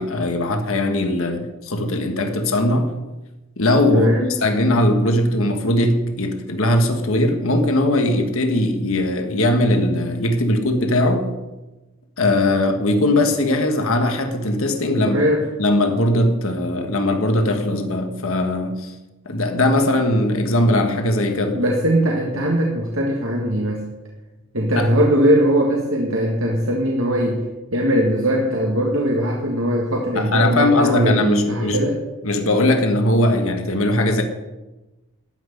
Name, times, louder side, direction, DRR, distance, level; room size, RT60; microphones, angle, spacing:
voice 1, 0.0-3.0 3.6-11.3 12.2-15.2 15.6-18.9 19.2-21.6 24.7-24.9 30.1-31.9 32.2-34.2, left 1 dB, 65° left, 1.6 m, -19 dB
voice 2, 3.9-4.3 15.0-15.4 21.5-23.8 24.5-27.4 27.7-32.0, equal, 60° right, 1.7 m, -20 dB
13.5 x 6.2 x 9.8 m
head